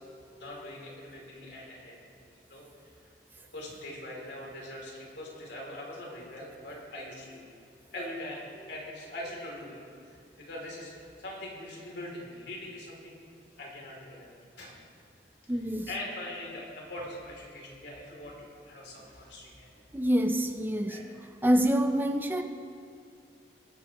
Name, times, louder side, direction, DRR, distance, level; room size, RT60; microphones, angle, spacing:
voice 1, 0.3-2.0 2.5-3.1 3.5-7.5 7.9-13.2 13.5-14.3 14.6-14.7 15.9-19.7 20.9-21.0, left 1 dB, 80° left, -2 dB, 2.9 m, -42 dB
voice 2, 15.5-15.9 19.9-21.0 21.4-22.4, equal, 10° right, 6 dB, 0.5 m, -26 dB
20.5 x 9.3 x 3.0 m, 2.4 s
head